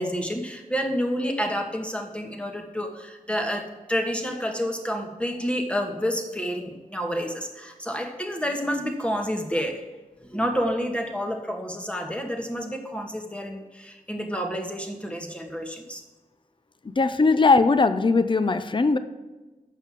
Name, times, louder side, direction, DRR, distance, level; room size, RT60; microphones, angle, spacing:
voice 1, 0.0-9.8 10.3-16.0, equal, 10° left, 3 dB, 1.4 m, -29 dB
voice 2, 17.0-19.0, left 3 dB, 35° left, 11 dB, 0.5 m, -19 dB
7.5 x 5.6 x 7.4 m, 1.2 s
wide cardioid pair, 60°, 14 cm